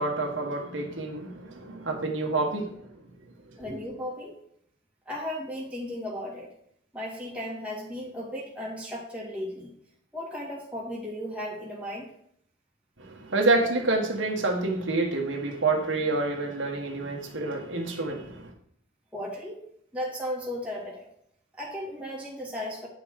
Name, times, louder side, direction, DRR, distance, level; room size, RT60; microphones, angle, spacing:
voice 1, 0.0-2.8 13.0-18.5, right 2 dB, 75° right, 1 dB, 1.7 m, -28 dB
voice 2, 3.6-4.3 5.1-6.5 6.9-9.7 10.1-12.1 19.1-19.6 19.9-21.1 21.5-22.9, left 1 dB, 5° right, -5 dB, 2.6 m, -35 dB
9.9 x 5.8 x 4.9 m, 0.69 s
head